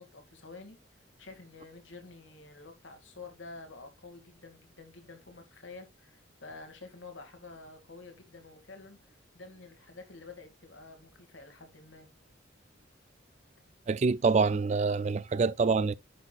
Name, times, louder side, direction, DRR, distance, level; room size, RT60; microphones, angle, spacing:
voice 1, 0.0-12.1, left 3 dB, 80° left, 2.3 m, -49 dB
voice 2, 13.9-15.9, right 4 dB, 35° right, 0.3 m, -26 dB
10.5 x 5.8 x 2.4 m
head